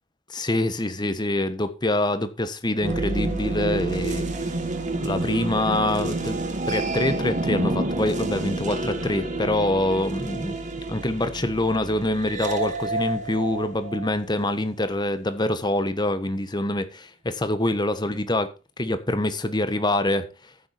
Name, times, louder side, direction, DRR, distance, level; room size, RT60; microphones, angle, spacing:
voice 1, 0.3-4.5 5.0-6.4 6.7-10.6 10.9-18.5 18.8-20.3, left 1 dB, 20° left, 1.4 m, -25 dB
sound 1, 2.8-14.6, right 2 dB, 40° right, 2.2 m, -29 dB
14.5 x 7.4 x 4.4 m
head